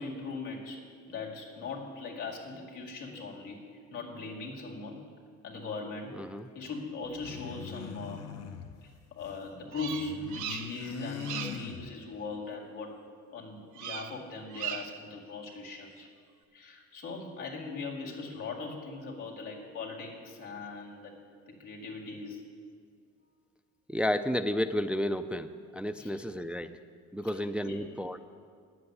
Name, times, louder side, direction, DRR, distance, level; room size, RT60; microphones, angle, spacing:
voice 1, 0.0-5.1 5.4-6.2 6.5-8.3 8.8-13.0 13.3-16.1 16.5-21.2 21.5-22.5 26.0-26.2 27.3-27.9, left 3 dB, 85° left, -1 dB, 2.1 m, -40 dB
voice 2, 6.1-6.5 11.4-11.5 23.9-26.8 27.1-28.2, equal, 5° right, 8 dB, 0.4 m, -32 dB
sound 1, 7.0-9.5 9.7-12.3, left 7 dB, 55° left, 0.8 m, -42 dB
Bird vocalization bird call bird song, 9.7-10.9 11.2-11.7 13.7-14.2 14.5-15.1, right 10 dB, 75° right, 0.7 m, -39 dB
9.4 x 7.9 x 9.5 m, 2.1 s
cardioid pair, 80°, 30 cm